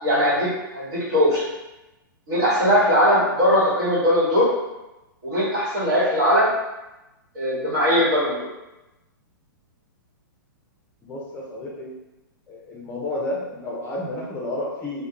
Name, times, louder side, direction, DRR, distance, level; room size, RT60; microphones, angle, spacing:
voice 1, 0.0-1.4 2.3-4.5 5.2-6.5 7.3-8.5, equal, 60° right, -10 dB, 1.3 m, -20 dB
voice 2, 11.0-11.9 12.5-15.1, left 1 dB, 20° left, -3 dB, 0.6 m, -31 dB
2.2 x 2.2 x 2.9 m, 0.99 s
hypercardioid pair, 120°, 12 cm